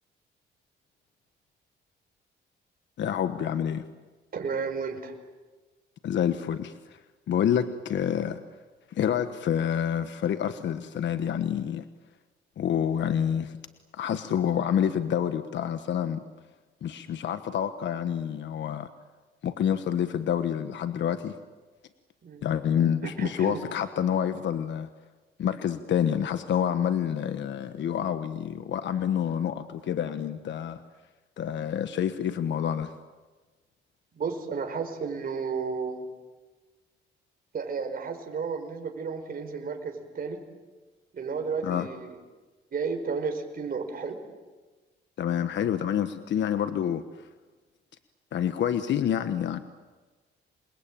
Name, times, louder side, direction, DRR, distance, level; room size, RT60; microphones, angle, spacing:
voice 1, 3.0-3.8 6.0-7.0 7.3-8.4 8.9-11.8 12.6-13.6 13.9-16.2 16.8-18.9 19.4-21.4 22.4-24.9 25.4-30.8 31.4-32.9 41.6-41.9 45.2-47.3 48.3-49.6, left 9 dB, 65° left, 10 dB, 1.3 m, -28 dB
voice 2, 4.3-5.1 22.2-22.5 23.0-23.6 34.1-36.1 37.5-40.4 41.1-42.1 42.7-44.2, right 5 dB, 45° right, 4 dB, 4.9 m, -32 dB
28.0 x 21.5 x 8.9 m, 1.3 s
cardioid pair, 90°, 20 cm